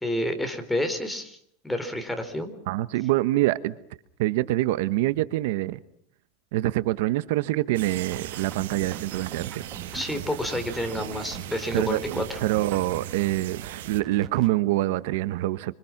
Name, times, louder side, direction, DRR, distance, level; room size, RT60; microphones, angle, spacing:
voice 1, 0.0-1.4 1.6-2.5 9.9-12.4, left 1 dB, 5° left, 4.0 m, -29 dB
voice 2, 2.7-3.8 4.2-5.8 6.5-9.6 11.7-15.7, right 16 dB, 75° right, 1.2 m, -25 dB
sound 1, 7.7-14.0, right 12 dB, 90° right, 1.8 m, -39 dB
sound 2, 8.1-14.5, right 8 dB, 35° right, 2.6 m, -42 dB
27.5 x 26.0 x 6.0 m
supercardioid pair, 140°, 0 cm